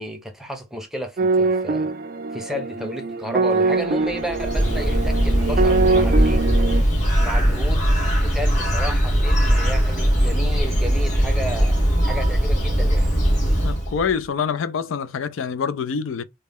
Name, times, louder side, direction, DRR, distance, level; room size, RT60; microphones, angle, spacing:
voice 1, 0.0-1.9 2.3-6.4 7.2-7.9 8.2-11.8 12.0-13.1, equal, ahead, 0.6 m, -32 dB
sound 1, 1.2-6.8, right 3 dB, 45° right, 0.3 m, -23 dB
Bird, 4.1-14.1, equal, 40° left, 2.1 m, -20 dB
voice 2, 13.6-16.2, left 6 dB, 75° left, 0.4 m, -25 dB
4.1 x 2.2 x 3.5 m
head